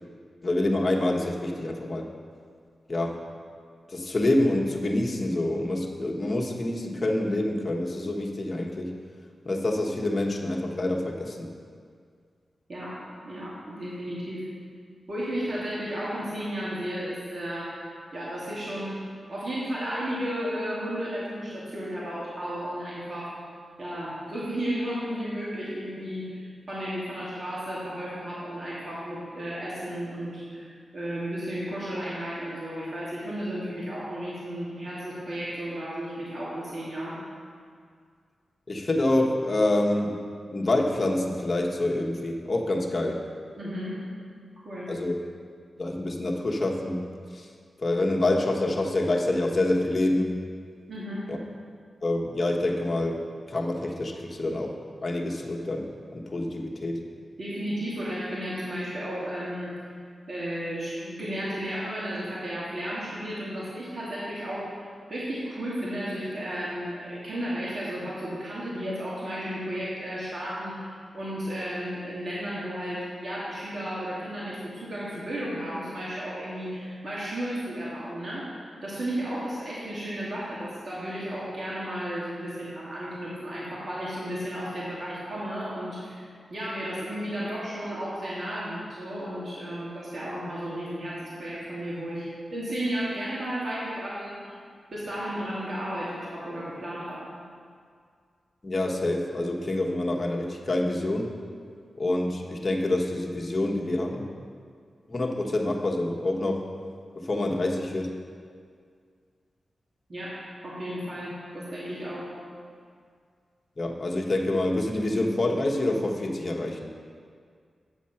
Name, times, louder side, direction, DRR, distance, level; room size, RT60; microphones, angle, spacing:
voice 1, 0.4-2.1 2.9-3.2 3.9-8.9 9.4-11.5 38.7-40.2 40.5-43.2 44.9-45.1 45.8-47.5 47.8-50.4 51.3-51.4 52.0-53.2 53.5-57.0 98.6-101.3 102.0-104.3 105.1-106.6 107.1-108.2 113.8-116.9, left 1 dB, 40° left, 0 dB, 1.2 m, -27 dB
voice 2, 12.7-14.5 15.1-17.8 18.1-19.0 19.3-23.4 23.8-37.2 43.6-44.0 44.6-44.9 50.9-51.3 57.4-59.7 60.3-78.5 78.8-94.6 94.9-97.2 110.1-112.3, equal, 55° right, -8 dB, 2.3 m, -33 dB
8.7 x 7.1 x 5.8 m, 2.1 s
cardioid pair, 75°, 0 cm